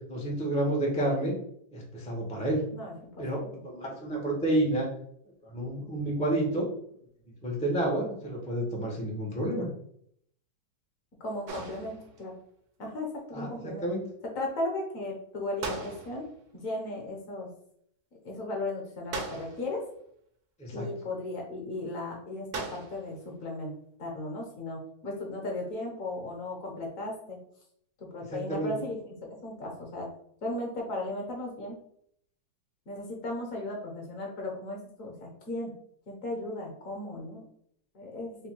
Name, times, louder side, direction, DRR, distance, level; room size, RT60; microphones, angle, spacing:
voice 1, 0.1-1.3 1.7-2.6 3.2-4.9 5.4-6.7 7.4-9.7 13.3-14.0 20.6-20.9 28.3-28.7, right 1 dB, 10° left, -3 dB, 0.4 m, -30 dB
voice 2, 2.7-3.6 11.2-12.3 12.8-13.9 14.3-16.2 16.5-17.5 18.2-19.8 20.7-23.7 24.0-27.4 28.0-30.1 30.4-31.8 32.9-35.7 36.1-37.4 37.9-38.4, left 2 dB, 55° left, 0 dB, 1.1 m, -36 dB
sound 1, 11.5-12.3 15.6-16.4 19.1-19.9 22.5-23.2, right 3 dB, 60° right, 0.9 m, -38 dB
3.4 x 2.2 x 4.4 m, 0.68 s
omnidirectional pair, 1.9 m